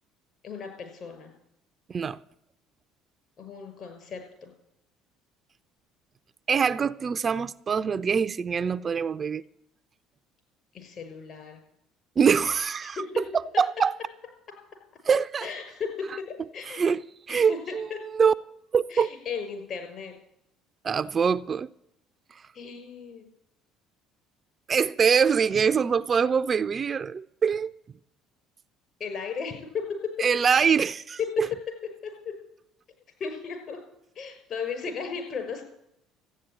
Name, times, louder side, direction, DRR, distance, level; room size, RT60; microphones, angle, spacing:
voice 1, 0.4-1.3 3.4-4.5 10.7-11.6 12.8-13.1 15.4-16.9 17.3-18.0 18.9-20.1 22.5-23.2 29.0-30.3 31.2-31.4 32.0-32.3 33.2-33.8 34.1-35.6, left 6 dB, 50° left, 6.1 m, -35 dB
voice 2, 6.5-9.4 12.2-13.0 13.6-13.9 15.1-15.5 16.7-17.9 18.2-18.3 18.7-19.1 20.8-21.7 24.7-27.7 30.2-31.5, right 6 dB, 40° right, 0.5 m, -24 dB
14.0 x 9.5 x 9.2 m
hypercardioid pair, 70°, 0 cm